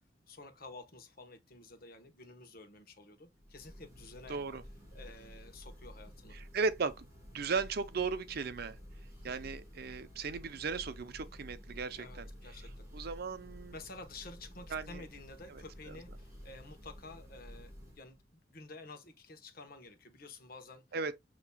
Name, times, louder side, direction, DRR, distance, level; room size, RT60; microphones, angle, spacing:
voice 1, 0.3-4.4 4.9-6.4 9.2-9.5 12.0-12.9 13.7-20.8, left 3 dB, 50° left, 1.1 m, -51 dB
Church bell, 3.3-18.2, equal, 15° right, 3.1 m, -52 dB
voice 2, 4.3-4.6 6.3-7.1 7.3-8.8 9.2-12.3 12.9-13.7 14.7-15.0 15.9-16.0 20.9-21.2, right 4 dB, 55° right, 0.6 m, -36 dB
6.9 x 2.9 x 2.2 m
head